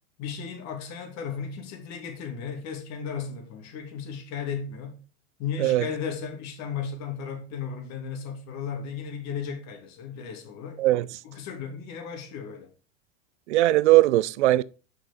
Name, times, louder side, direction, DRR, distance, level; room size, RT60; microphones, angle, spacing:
voice 1, 0.2-5.0 5.4-10.8 11.2-12.7, left 6 dB, 50° left, 2.7 m, -35 dB
voice 2, 13.5-14.6, right 16 dB, 80° right, 0.6 m, -19 dB
7.3 x 5.8 x 5.1 m
hypercardioid pair, 105°, 34 cm